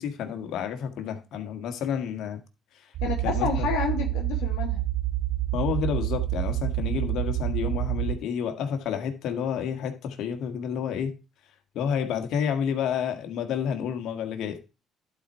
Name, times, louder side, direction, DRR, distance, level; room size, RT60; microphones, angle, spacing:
voice 1, 0.0-2.4 3.2-3.7 5.5-11.1 11.7-14.6, left 7 dB, 70° left, 1.7 m, -30 dB
sound 1, 2.9-8.2, right 15 dB, 75° right, 0.5 m, -28 dB
voice 2, 3.0-4.8, left 6 dB, 85° left, 1.5 m, -29 dB
11.5 x 4.5 x 4.5 m
supercardioid pair, 75°, 0 cm